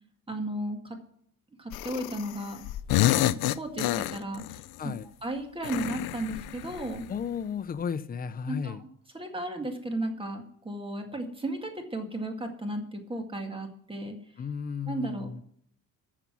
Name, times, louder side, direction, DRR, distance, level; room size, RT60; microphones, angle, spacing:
voice 1, 0.3-1.0 1.6-2.6 3.6-4.9 5.2-7.1 8.5-8.9 9.1-14.2 14.9-15.3, right 1 dB, 15° right, 5 dB, 2.0 m, -34 dB
sound 1, 1.7-2.4 2.6-4.6 5.6-7.1, left 15 dB, 85° left, 0.6 m, -28 dB
voice 2, 3.0-3.3 4.8-5.1 7.1-8.8 14.4-15.4, left 7 dB, 25° left, 12 dB, 0.6 m, -34 dB
13.5 x 7.0 x 6.1 m, 0.66 s
cardioid pair, 125°, 36 cm